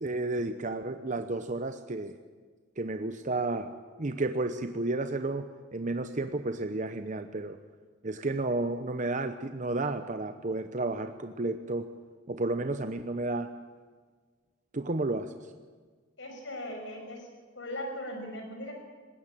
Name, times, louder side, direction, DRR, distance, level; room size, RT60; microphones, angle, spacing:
voice 1, 0.0-2.2 2.8-3.7 4.0-7.6 8.0-11.9 12.3-13.5 14.7-15.3, right 2 dB, 40° right, 8 dB, 0.9 m, -32 dB
voice 2, 16.2-17.3 17.5-18.7, left 1 dB, 75° left, 3 dB, 5.9 m, -38 dB
20.0 x 16.0 x 9.1 m, 1.5 s
head